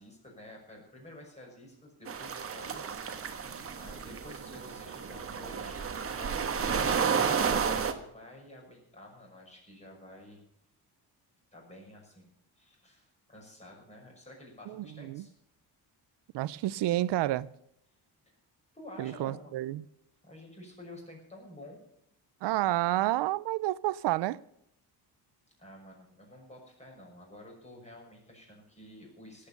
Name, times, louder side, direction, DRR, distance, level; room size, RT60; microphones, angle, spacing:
voice 1, 0.0-3.5 3.7-10.4 11.5-15.3 18.7-19.5 20.2-21.8 25.6-29.5, left 1 dB, 15° left, 6.2 m, -50 dB
sound 1, 2.1-7.9, right 6 dB, 35° right, 1.4 m, -31 dB
voice 2, 14.7-15.2 16.3-17.5 19.0-19.8 22.4-24.4, right 15 dB, 90° right, 0.6 m, -30 dB
18.0 x 8.7 x 6.9 m
cardioid pair, 160°, 40 cm